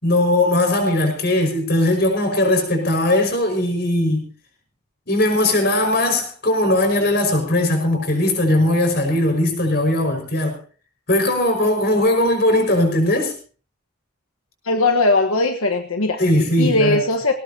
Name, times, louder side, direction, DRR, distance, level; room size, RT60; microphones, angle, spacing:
voice 1, 0.0-4.3 5.1-10.6 11.1-13.3 16.2-17.0, left 1 dB, 50° left, 3 dB, 5.6 m, -19 dB
voice 2, 14.6-16.2 16.6-17.3, left 2 dB, 90° left, 4 dB, 1.3 m, -19 dB
20.5 x 18.0 x 2.9 m, 0.39 s
head